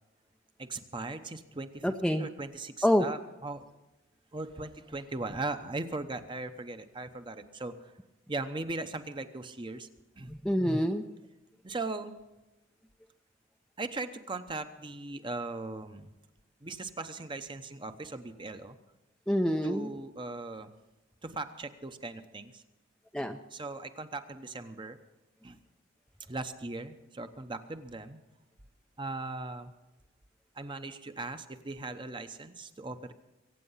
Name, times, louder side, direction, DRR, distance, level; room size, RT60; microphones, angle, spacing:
voice 1, 0.6-3.7 4.3-7.7 8.3-9.9 10.2-10.3 11.6-12.1 13.8-16.1 16.6-18.8 19.6-20.7 21.2-22.6 23.5-25.0 25.4-25.6 26.3-28.2 29.0-29.7 30.5-33.1, right 2 dB, 25° right, 9 dB, 0.9 m, -39 dB
voice 2, 1.8-2.3 2.8-3.1 10.3-11.0 19.3-19.9 23.1-23.4, equal, 5° left, 4 dB, 0.5 m, -27 dB
23.5 x 9.1 x 5.7 m, 1.0 s
head